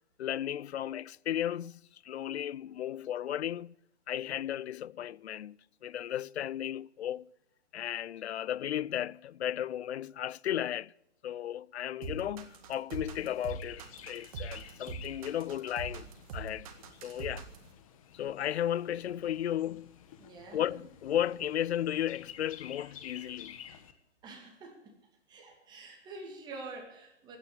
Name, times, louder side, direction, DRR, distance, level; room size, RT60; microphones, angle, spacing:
voice 1, 0.2-3.7 4.1-7.3 7.7-10.9 11.2-16.7 17.0-17.5 18.1-20.0 20.5-23.6, left 11 dB, 65° left, 0.5 m, -35 dB
sound 1, 12.0-17.7, right 5 dB, 30° right, 1.8 m, -42 dB
Chirp tweet, 13.1-23.9, left 9 dB, 30° left, 1.2 m, -52 dB
voice 2, 20.2-20.8 24.2-25.0 25.3-27.4, right 3 dB, 10° right, 2.3 m, -47 dB
16.0 x 9.5 x 8.5 m
hypercardioid pair, 160°, 35 cm